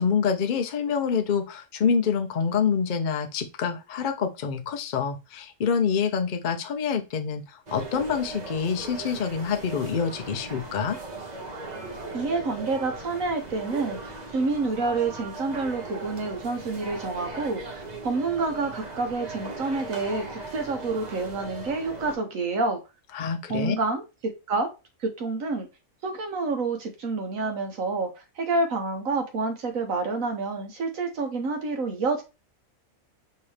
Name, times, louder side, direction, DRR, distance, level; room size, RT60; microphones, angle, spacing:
voice 1, 0.0-11.0 23.1-23.7, left 6 dB, 55° left, 0.5 m, -26 dB
sound 1, 7.7-22.1, right 3 dB, 35° right, 0.9 m, -38 dB
voice 2, 12.1-22.8 23.5-24.7 25.0-25.7 26.0-32.2, right 3 dB, 70° right, 1.3 m, -28 dB
5.2 x 2.8 x 3.3 m
omnidirectional pair, 1.5 m